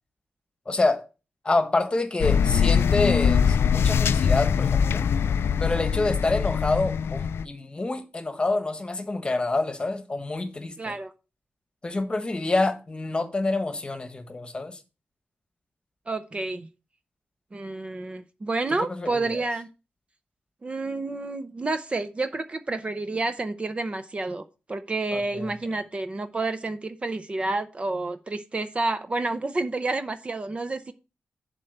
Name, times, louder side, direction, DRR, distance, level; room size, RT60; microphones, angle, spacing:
voice 1, 0.7-1.1 1.4-5.1 5.6-10.9 11.8-14.8 18.7-19.4 25.1-25.5, left 2 dB, 25° left, 1.2 m, -27 dB
sound 1, 2.2-7.4, left 7 dB, 80° left, 0.3 m, -22 dB
voice 2, 10.8-11.1 16.1-16.7 17.5-19.7 20.6-24.4 24.7-30.9, right 3 dB, 30° right, 0.6 m, -29 dB
7.5 x 4.4 x 6.6 m
wide cardioid pair, 145°, 4 cm